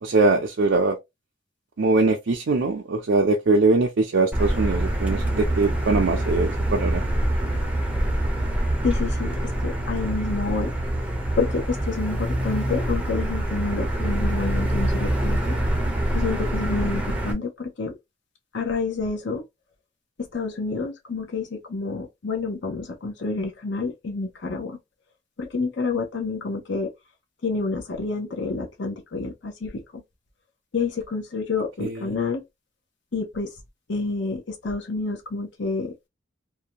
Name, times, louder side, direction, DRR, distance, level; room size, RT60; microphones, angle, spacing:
voice 1, 0.0-1.0 1.8-7.0 31.8-32.0, right 3 dB, 70° right, 0.5 m, -22 dB
Motor vehicle (road), 4.3-17.3, right 1 dB, 5° right, 0.5 m, -25 dB
voice 2, 8.8-10.7 11.4-15.6 16.1-18.0 18.5-19.4 20.3-24.8 25.4-26.9 27.4-30.0 30.7-32.4 33.1-33.5 33.9-35.9, left 4 dB, 65° left, 0.6 m, -28 dB
2.6 x 2.2 x 2.8 m
head